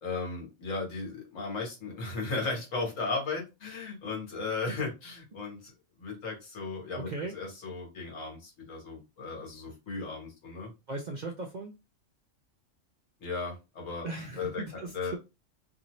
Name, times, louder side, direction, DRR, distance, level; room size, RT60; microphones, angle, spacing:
voice 1, 0.0-5.7 6.0-10.7 13.2-14.1 14.4-15.1, left 3 dB, 80° left, 1.5 m, -36 dB
voice 2, 7.0-7.4 10.9-11.8 14.0-15.2, right 3 dB, 65° right, 0.4 m, -38 dB
2.7 x 2.6 x 3.0 m
omnidirectional pair, 1.3 m